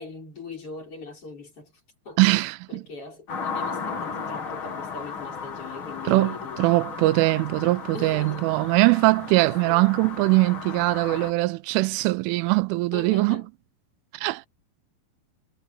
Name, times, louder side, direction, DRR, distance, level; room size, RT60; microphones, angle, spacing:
voice 1, 0.0-2.2 2.7-6.8 7.9-8.5 9.6-9.9 12.9-13.5, left 4 dB, 30° left, 5.6 m, -40 dB
voice 2, 2.2-2.8 6.1-13.4 14.1-14.5, right 21 dB, 85° right, 3.0 m, -22 dB
sound 1, 3.3-11.3, left 5 dB, 65° left, 1.2 m, -35 dB
omnidirectional pair, 5.9 m